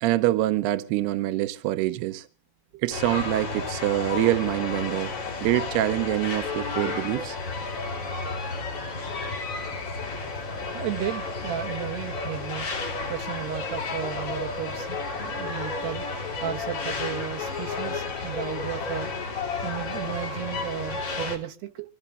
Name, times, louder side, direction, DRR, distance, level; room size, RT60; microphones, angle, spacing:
voice 1, 0.0-2.3 2.8-5.1 5.4-7.4, right 15 dB, 85° right, 2.3 m, -25 dB
sound 1, 2.9-21.4, left 3 dB, 40° left, 2.5 m, -32 dB
voice 2, 10.5-12.7 13.1-16.1 16.4-19.1 19.6-21.9, right 11 dB, 65° right, 3.2 m, -34 dB
25.5 x 14.0 x 2.5 m
omnidirectional pair, 5.6 m